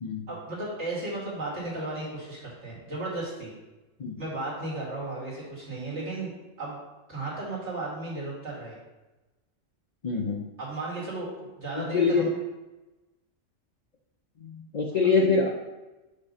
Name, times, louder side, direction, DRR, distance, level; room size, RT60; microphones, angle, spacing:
voice 1, 0.3-3.5 4.2-6.3 6.6-6.8 7.1-8.8 10.6-12.4, right 2 dB, 65° right, -6 dB, 2.6 m, -34 dB
voice 2, 10.0-10.4 11.8-12.3 14.4-15.5, left 4 dB, 45° left, 0 dB, 0.5 m, -25 dB
5.3 x 5.2 x 5.4 m, 1.1 s
omnidirectional pair, 1.3 m